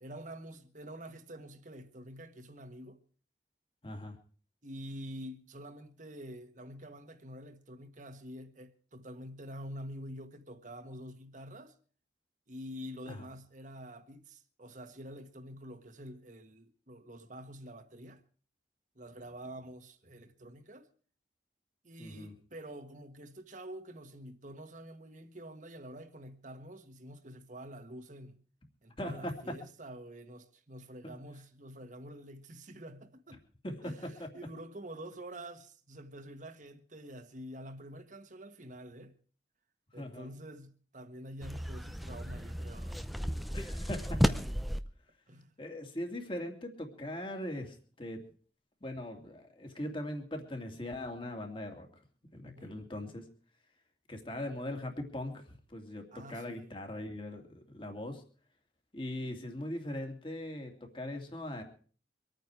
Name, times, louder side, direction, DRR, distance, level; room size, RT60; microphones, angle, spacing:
voice 1, 0.0-3.0 4.6-11.7 12.5-18.2 18.9-20.9 21.8-28.4 28.8-33.4 33.8-39.2 39.9-43.5 45.3-45.5 52.4-52.7 56.1-56.7, equal, 45° right, 1.5 m, -47 dB
voice 2, 3.8-4.2 13.1-13.3 22.0-22.3 29.0-29.3 31.0-31.1 33.6-34.3 40.0-40.3 43.5-44.2 45.6-48.2 48.8-51.9 52.3-53.3 54.1-58.2 58.9-61.6, left 1 dB, 30° left, 2.6 m, -40 dB
sound 1, 41.4-44.8, equal, ahead, 0.7 m, -33 dB
25.0 x 9.3 x 4.8 m
head